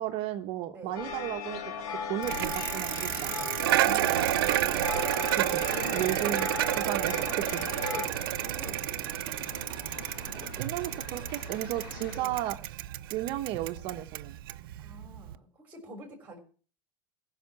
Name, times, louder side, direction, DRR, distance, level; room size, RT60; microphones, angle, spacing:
voice 1, 0.0-1.6 1.9-3.5 5.3-5.6 5.9-6.5 6.8-7.6 10.3-12.8 13.1-14.4, right 13 dB, 50° right, 5 dB, 1.0 m, -34 dB
sound 1, 0.9-8.1, left 6 dB, 60° left, 1.7 m, -37 dB
Bicycle, 2.2-15.4, right 15 dB, 90° right, 0.6 m, -31 dB
sound 2, 3.8-12.2, left 6 dB, 85° left, 1.7 m, -46 dB
voice 2, 3.8-6.4 7.8-9.0 10.1-10.5 12.1-12.4 14.8-16.4, right 1 dB, 15° right, 2 dB, 3.4 m, -46 dB
15.0 x 5.8 x 7.0 m, 0.41 s
supercardioid pair, 145°, 12 cm